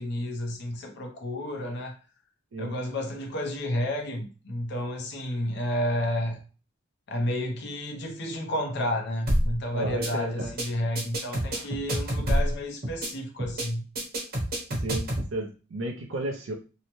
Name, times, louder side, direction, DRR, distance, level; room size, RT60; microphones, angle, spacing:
voice 1, 0.0-2.0 2.6-6.4 7.1-13.8, left 1 dB, 60° left, 0.7 m, -31 dB
sound 1, 9.3-9.5 9.8-10.1 10.4-10.6 10.9-12.5 12.8-13.1 13.4-13.6 13.9-15.3, equal, 50° right, 0.9 m, -27 dB
voice 2, 9.7-10.5 11.5-11.7 14.8-16.5, right 1 dB, 70° right, 0.5 m, -33 dB
2.7 x 2.1 x 3.0 m
head